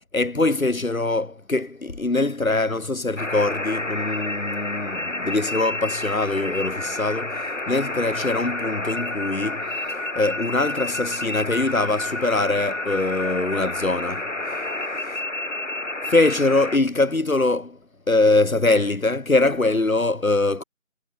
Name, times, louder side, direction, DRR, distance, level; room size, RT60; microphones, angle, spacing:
voice 1, 0.1-9.8 10.2-14.6 16.1-17.8 18.1-20.6, left 2 dB, 85° left, 2.0 m, -23 dB
sound 1, 3.2-16.8, left 2 dB, 65° left, 3.0 m, -30 dB
figure-of-eight pair, 175°, 40 cm